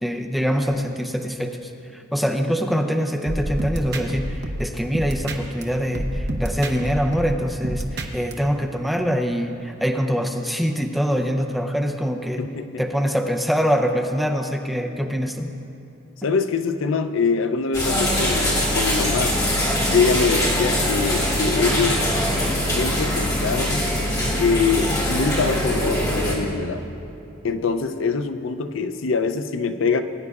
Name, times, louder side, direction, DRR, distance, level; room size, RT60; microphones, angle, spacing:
voice 1, 0.0-12.4 12.8-15.6, equal, ahead, 3 dB, 0.5 m, -24 dB
sound 1, 3.3-5.6 5.9-8.3, right 1 dB, 55° right, 0.8 m, -28 dB
voice 2, 12.4-12.7 16.2-19.4 19.9-22.1 22.7-23.9 24.4-26.9 27.4-30.0, left 5 dB, 70° left, 9 dB, 0.5 m, -24 dB
sound 2, 17.7-26.3, equal, 20° left, 2.1 m, -22 dB
19.5 x 9.5 x 2.4 m, 2.9 s
head